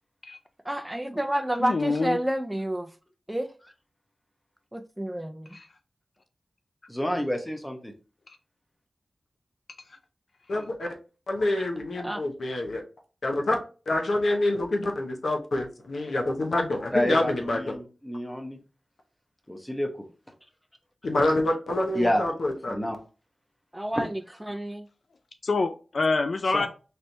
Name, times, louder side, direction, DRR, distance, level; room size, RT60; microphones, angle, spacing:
voice 1, 0.7-2.9 3.3-3.5 4.7-5.5 12.0-12.2 23.7-24.9, right 1 dB, 10° right, 0.4 m, -29 dB
voice 2, 1.6-2.2 5.5-5.7 8.3-8.4 25.4-26.7, left 3 dB, 65° left, 0.4 m, -26 dB
voice 3, 6.9-7.9 16.9-18.6 19.5-20.1 21.9-22.2 22.7-23.0 24.0-24.1 26.5-26.7, equal, 10° left, 0.9 m, -29 dB
voice 4, 10.5-10.9 11.3-12.8 13.2-13.6 13.9-17.8 21.0-22.9, left 1 dB, 80° left, 0.9 m, -27 dB
4.3 x 3.2 x 2.7 m
wide cardioid pair, 90°, 0 cm